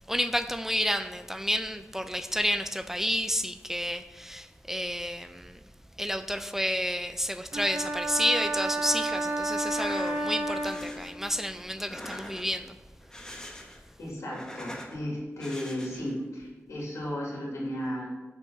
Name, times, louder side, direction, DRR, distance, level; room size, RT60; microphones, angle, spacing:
voice 1, 0.1-5.6 6.0-12.8, equal, 5° right, 9 dB, 0.4 m, -30 dB
sound 1, 7.5-11.4, right 1 dB, 60° right, 1.0 m, -31 dB
sound 2, 9.6-10.2 10.6-11.1 11.7-12.6 13.0-13.9 14.2-15.0 15.4-16.1, left 1 dB, 15° left, 1.1 m, -43 dB
voice 2, 14.0-18.1, equal, 85° left, -4 dB, 2.2 m, -34 dB
5.3 x 5.0 x 5.6 m, 1.3 s
cardioid pair, 60°, 5 cm